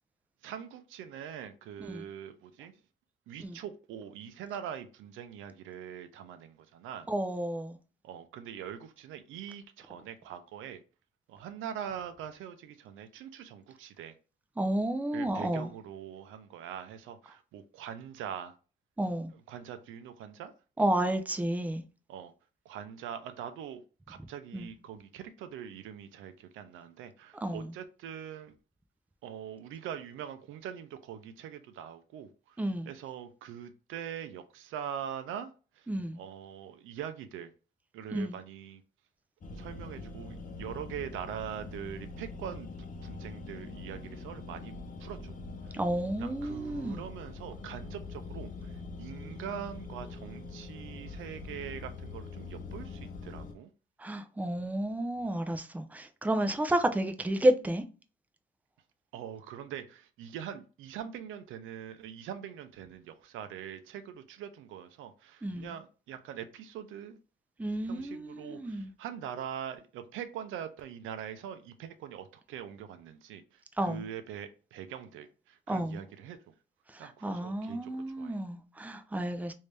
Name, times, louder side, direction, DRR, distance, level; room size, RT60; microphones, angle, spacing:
voice 1, 0.4-2.7 3.3-7.1 8.0-10.8 11.3-14.1 15.1-18.5 19.5-20.5 22.1-22.3 22.7-28.5 29.2-32.6 32.9-35.5 35.8-35.9 36.2-37.5 37.9-38.8 39.5-42.7 43.0-45.3 45.6-45.8 46.2-53.7 55.2-55.3 59.1-67.2 67.9-76.4 77.0-78.4, right 9 dB, 85° right, 0.5 m, -43 dB
voice 2, 1.8-2.1 3.4-3.6 7.1-7.8 14.6-15.7 19.0-19.3 20.8-21.8 24.5-24.7 27.4-27.7 32.6-32.9 35.9-36.2 38.1-38.4 45.7-47.0 54.0-57.8 65.4-65.8 67.6-68.9 73.8-74.1 75.7-76.0 76.9-79.5, right 1 dB, 10° right, 0.5 m, -31 dB
sound 1, 39.4-53.5, left 3 dB, 40° left, 0.8 m, -43 dB
3.2 x 2.7 x 3.3 m
cardioid pair, 90°, 20 cm